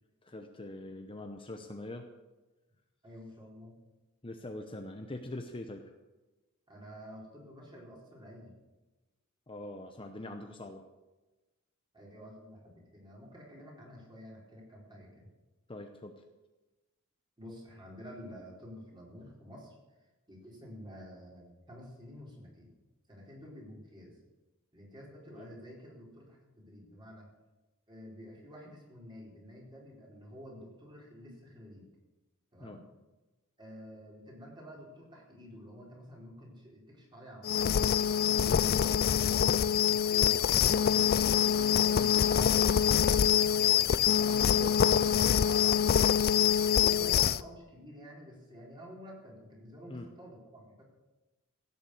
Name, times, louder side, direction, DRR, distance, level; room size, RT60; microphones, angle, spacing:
voice 1, 0.2-2.1 4.2-5.8 9.5-10.8 15.7-16.1 25.4-25.5 32.6-32.8 42.0-42.2 44.3-45.2 47.0-47.2 49.9-50.1, left 1 dB, 25° left, 5 dB, 0.8 m, -43 dB
voice 2, 3.0-3.8 6.7-8.5 11.9-15.3 17.4-19.8 20.3-22.8 23.1-24.2 24.7-27.3 27.9-31.9 32.5-32.9 33.6-41.2 41.5-44.4 45.5-46.3 46.6-50.8, equal, 20° right, -3 dB, 4.2 m, -50 dB
sound 1, 37.4-47.4, left 8 dB, 45° left, 0.4 m, -25 dB
16.5 x 7.2 x 7.9 m, 1.1 s
head